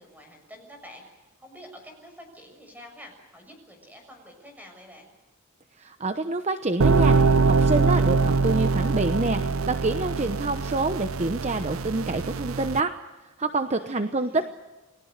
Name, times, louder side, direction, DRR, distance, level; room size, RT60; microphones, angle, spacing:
voice 1, 0.0-5.1 13.7-14.5, equal, 10° right, 4 dB, 6.6 m, -48 dB
voice 2, 5.8-13.0 13.4-14.5, right 2 dB, 30° right, 9 dB, 0.9 m, -27 dB
sound 1, 6.8-12.8, right 4 dB, 80° right, 0.7 m, -23 dB
29.5 x 20.0 x 6.6 m, 1.2 s
head